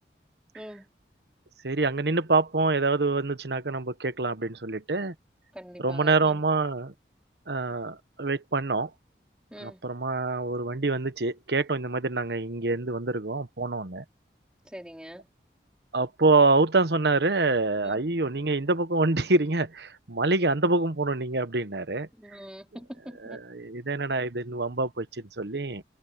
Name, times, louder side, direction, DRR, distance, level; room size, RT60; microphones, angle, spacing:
voice 1, 0.5-0.9 5.5-6.4 9.5-9.9 14.6-15.3 17.8-18.0 22.2-23.4, equal, 5° right, 3.5 m, -44 dB
voice 2, 1.6-5.1 5.8-6.9 7.5-8.9 9.6-14.0 15.9-22.1 23.2-25.8, right 3 dB, 70° right, 1.1 m, -26 dB
head